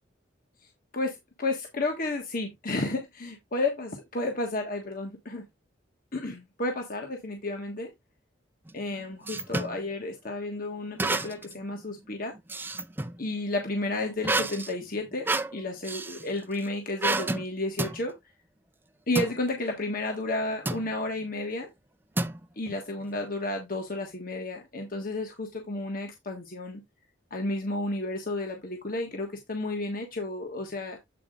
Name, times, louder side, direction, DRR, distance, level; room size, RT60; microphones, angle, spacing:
voice 1, 0.9-5.4 6.1-7.9 8.7-12.3 13.2-18.1 19.1-21.7 22.6-26.8 27.3-31.0, left 2 dB, 50° left, 1.4 m, -32 dB
sound 1, 8.7-9.8 11.0-11.6 11.9-13.2 14.2-16.2 17.0-17.4 17.8-18.0 19.1-19.4 20.7-20.9 22.2-22.7, right 2 dB, 10° right, 0.5 m, -30 dB
8.4 x 4.4 x 3.7 m
head